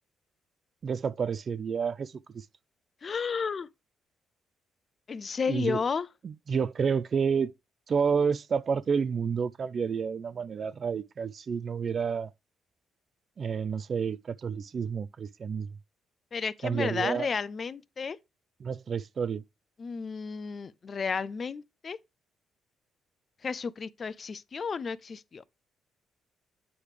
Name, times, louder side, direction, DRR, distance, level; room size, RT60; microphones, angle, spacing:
voice 1, 0.8-2.4 5.5-5.8 6.2-7.5 7.9-12.3 13.4-15.7 16.6-17.3 18.6-19.4, right 6 dB, 45° right, 0.4 m, -30 dB
voice 2, 3.0-3.7 5.1-6.1 16.3-18.2 19.8-22.0 23.4-25.4, left 5 dB, 40° left, 0.5 m, -32 dB
8.6 x 3.2 x 4.9 m
cardioid pair, 90°, 0 cm